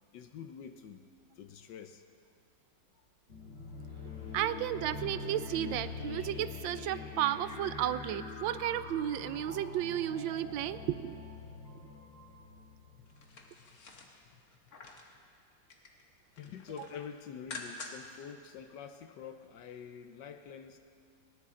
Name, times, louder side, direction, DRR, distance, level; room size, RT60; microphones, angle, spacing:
voice 1, 0.1-1.0 1.4-2.0 13.0-13.1 14.1-14.4 16.4-20.8, left 7 dB, 70° left, 8 dB, 1.3 m, -47 dB
sound 1, 3.3-13.5, left 4 dB, 35° left, 1.8 m, -44 dB
voice 2, 4.3-11.3, right 12 dB, 85° right, 14 dB, 1.3 m, -33 dB
sound 2, 13.1-15.1 15.5-16.0 16.3-18.2 18.5-18.6, left 3 dB, 55° left, 1.7 m, -48 dB
19.5 x 17.5 x 3.8 m, 2.2 s
omnidirectional pair, 2.0 m